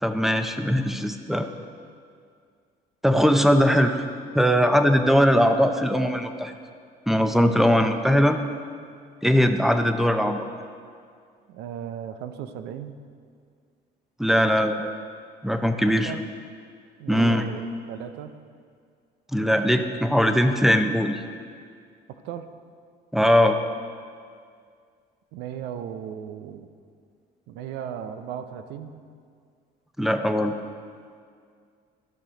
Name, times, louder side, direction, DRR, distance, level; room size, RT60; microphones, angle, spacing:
voice 1, 0.0-1.5 3.0-4.1 4.3-6.5 7.1-8.4 9.2-10.5 14.2-14.9 15.4-16.2 17.1-17.5 19.3-21.2 23.1-23.6 30.0-30.5, equal, ahead, 7 dB, 0.6 m, -20 dB
voice 2, 11.5-13.0 15.8-16.3 17.0-18.4 22.2-22.5 25.3-26.7 27.5-29.0, right 9 dB, 90° right, 9 dB, 0.6 m, -36 dB
12.5 x 6.0 x 5.1 m, 2.2 s
cardioid pair, 110°, 17 cm